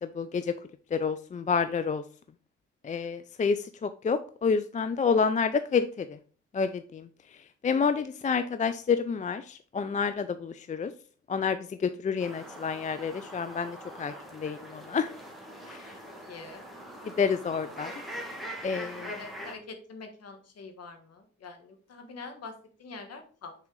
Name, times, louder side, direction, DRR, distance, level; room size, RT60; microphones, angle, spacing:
voice 1, 0.0-0.5 0.9-2.0 2.8-6.2 6.5-7.1 7.6-10.9 11.3-15.1 15.7-15.8 17.2-17.9 18.6-19.1, left 5 dB, 25° left, 11 dB, 0.4 m, -29 dB
sound 1, 12.2-19.6, equal, ahead, 1.7 m, -43 dB
voice 2, 16.0-16.6 19.0-23.5, left 4 dB, 55° left, 5 dB, 1.6 m, -45 dB
6.1 x 4.3 x 3.8 m, 0.42 s
cardioid pair, 90°, 30 cm